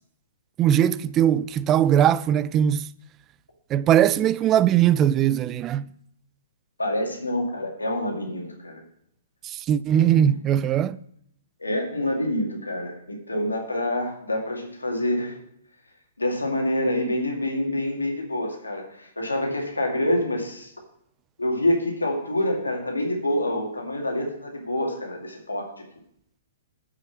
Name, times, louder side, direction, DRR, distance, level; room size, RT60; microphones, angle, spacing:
voice 1, 0.6-2.9 3.7-5.9 9.4-11.0, right 10 dB, 25° right, 0.3 m, -20 dB
voice 2, 6.8-8.8 10.0-10.3 11.6-15.3 16.2-20.7 21.4-25.7, left 1 dB, 90° left, 2.3 m, -27 dB
7.4 x 6.6 x 7.0 m
figure-of-eight pair, 120°, 0 cm